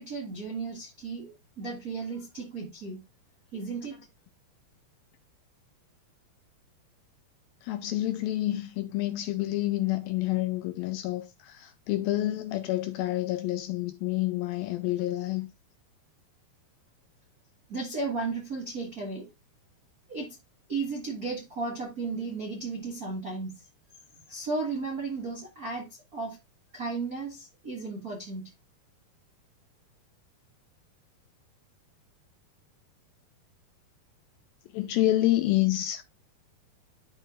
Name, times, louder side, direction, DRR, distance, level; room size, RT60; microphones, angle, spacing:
voice 1, 0.0-3.0 3.5-4.0 17.7-19.3 20.1-20.4 20.7-23.7 24.3-26.4 26.7-28.5, right 4 dB, 45° right, 1.2 m, -34 dB
voice 2, 7.6-15.5 34.7-36.0, left 15 dB, 85° left, 2.2 m, -28 dB
12.0 x 5.4 x 2.5 m
omnidirectional pair, 4.7 m